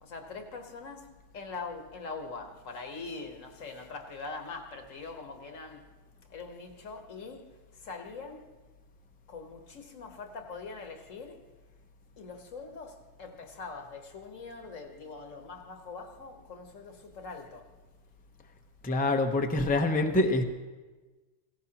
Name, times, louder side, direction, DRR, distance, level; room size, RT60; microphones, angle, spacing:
voice 1, 0.0-1.1 1.3-5.8 6.3-7.4 7.7-8.5 9.3-11.4 12.2-17.7, left 4 dB, 80° left, 4 dB, 1.6 m, -43 dB
voice 2, 18.8-20.4, left 2 dB, 10° left, 4 dB, 0.6 m, -25 dB
16.5 x 15.5 x 2.9 m, 1.3 s
omnidirectional pair, 1.3 m